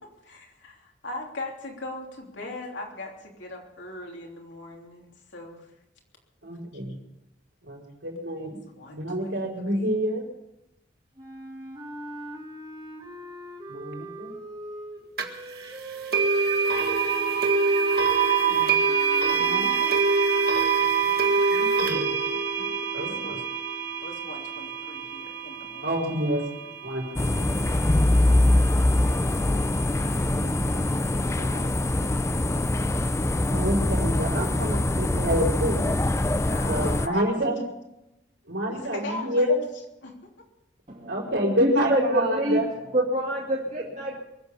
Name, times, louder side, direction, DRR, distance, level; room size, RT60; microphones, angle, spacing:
voice 1, 0.0-5.7 8.7-9.9 20.8-21.4 23.0-23.4 24.0-25.9 29.7-30.8 31.1-33.6 34.7-35.0 36.5-37.5 38.6-39.5 40.0-40.3, left 2 dB, 75° left, 0 dB, 3.4 m, -41 dB
voice 2, 6.4-7.0 7.6-8.6 8.9-10.3 13.7-14.3 18.5-18.8 19.3-20.0 21.5-23.4 25.8-26.4 26.8-28.0 29.2-29.5 30.1-30.7 33.5-35.9 36.7-37.6 38.5-39.5 41.1-42.7, equal, 80° right, -1 dB, 4.9 m, -29 dB
sound 1, 11.2-19.9, right 1 dB, 25° right, 2.1 m, -40 dB
sound 2, 15.2-15.3 16.1-27.1, right 5 dB, 55° right, 1.7 m, -24 dB
sound 3, 27.2-37.1, left 1 dB, 15° left, 0.4 m, -23 dB
voice 3, 40.9-41.3 41.6-42.6 42.9-44.2, right 1 dB, 40° right, -4 dB, 2.5 m, -26 dB
23.0 x 8.1 x 6.9 m, 0.90 s
head